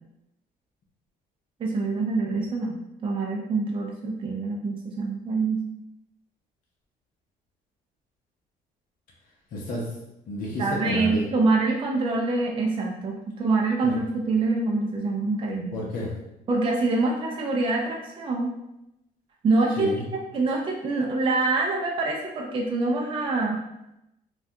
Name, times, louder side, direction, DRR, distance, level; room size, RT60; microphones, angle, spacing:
voice 1, 1.6-5.6 10.6-15.7 16.5-18.5 19.4-23.6, right 3 dB, 30° right, -1 dB, 0.4 m, -25 dB
voice 2, 9.5-9.9 10.3-11.3 13.8-14.0 15.7-16.1 19.8-20.0, left 1 dB, 55° left, -4 dB, 0.8 m, -30 dB
3.3 x 2.3 x 2.7 m, 0.87 s
cardioid pair, 110°, 17 cm